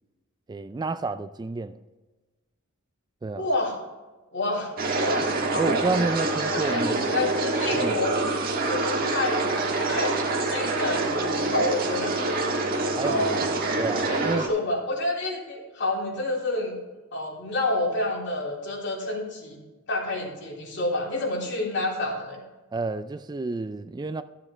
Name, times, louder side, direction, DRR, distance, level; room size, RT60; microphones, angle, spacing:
voice 1, 0.5-1.8 3.2-3.5 5.6-7.0 7.7-8.0 13.0-13.5 13.8-14.5 22.7-24.2, right 3 dB, 20° right, 0.3 m, -30 dB
voice 2, 3.4-3.8 4.3-5.8 6.5-8.1 8.6-9.4 9.9-12.3 12.5-13.3 13.9-16.8 17.1-19.6 19.9-22.4, left 2 dB, 60° left, 3.3 m, -29 dB
sound 1, 4.8-14.5, right 3 dB, 45° right, 1.4 m, -26 dB
13.5 x 7.4 x 3.2 m
head